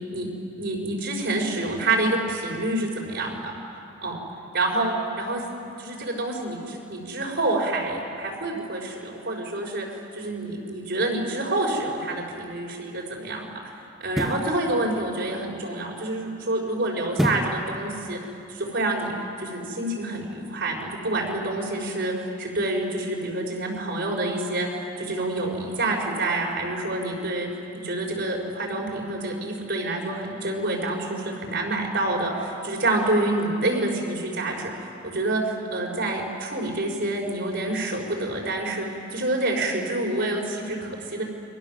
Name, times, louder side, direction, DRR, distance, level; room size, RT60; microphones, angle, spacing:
voice 1, 0.6-3.4 4.0-4.2 4.5-5.4 5.8-13.7 14.0-18.2 18.5-19.1 19.4-24.7 25.0-27.5 27.7-41.2, right 2 dB, 60° right, -1 dB, 5.9 m, -27 dB
sound 1, 14.0-14.5 17.1-17.6 18.1-18.2, equal, ahead, 1.2 m, -26 dB
30.0 x 23.5 x 7.7 m, 2.6 s
head